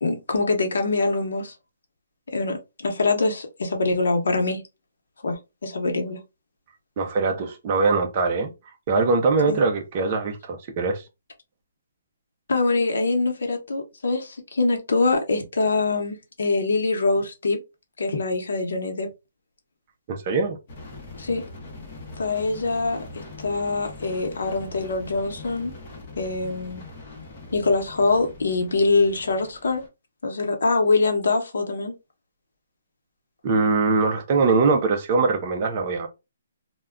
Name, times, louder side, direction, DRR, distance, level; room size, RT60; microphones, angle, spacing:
voice 1, 0.0-1.5 2.3-2.6 2.8-4.6 5.2-6.2 9.5-9.6 12.5-17.6 18.0-19.1 21.2-21.4 22.2-25.7 26.2-26.8 27.5-29.8 30.2-31.9, left 3 dB, 75° left, 0.8 m, -24 dB
voice 2, 7.0-8.5 8.9-11.0 20.1-20.6 33.4-36.1, right 4 dB, 25° right, 0.4 m, -22 dB
sound 1, 20.7-29.9, left 3 dB, 30° left, 0.8 m, -42 dB
2.2 x 2.1 x 3.5 m
hypercardioid pair, 180°, 0 cm